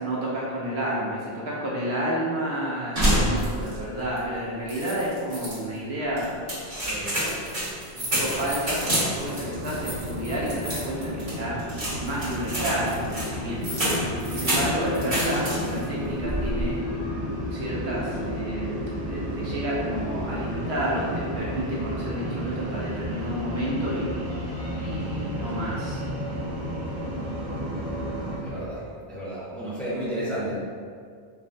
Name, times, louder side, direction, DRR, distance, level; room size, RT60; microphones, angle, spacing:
voice 1, 0.0-6.3 6.8-7.3 7.9-11.6 12.0-13.8 14.3-18.7 19.1-24.1 24.8-26.0, right 1 dB, 70° right, -6 dB, 1.0 m, -30 dB
sound 1, 3.0-3.9 4.2-4.3 4.7-5.6 6.2-15.9 16.2-16.7, equal, 30° right, 1.1 m, -28 dB
sound 2, 9.1-28.7, equal, 65° left, 1.1 m, -39 dB
sound 3, 9.3-28.4, equal, 85° right, 1.2 m, -33 dB
voice 2, 28.4-28.8 29.1-30.6, right 1 dB, ahead, -10 dB, 0.9 m, -31 dB
4.5 x 2.1 x 2.6 m, 2.1 s
omnidirectional pair, 1.2 m